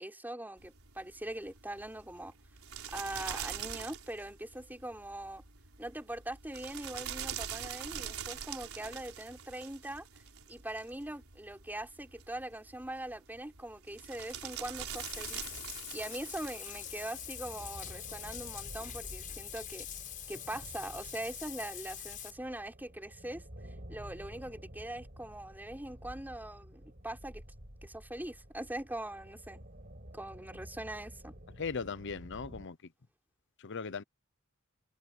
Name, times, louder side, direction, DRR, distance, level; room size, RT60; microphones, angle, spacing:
voice 1, 0.0-2.3 2.9-5.4 5.8-10.1 10.5-19.9 20.3-23.5 23.9-27.4 27.8-29.6 30.1-31.3, right 1 dB, 10° right, 4.1 m, -42 dB
sound 1, 0.6-17.5, right 8 dB, 75° right, 5.0 m, -45 dB
Bathtub (filling or washing), 14.3-22.3, left 11 dB, 40° left, 6.1 m, -45 dB
sound 2, 14.8-32.7, equal, 45° right, 7.0 m, -51 dB
voice 2, 31.6-32.8 33.6-34.0, left 5 dB, 60° left, 0.8 m, -38 dB
head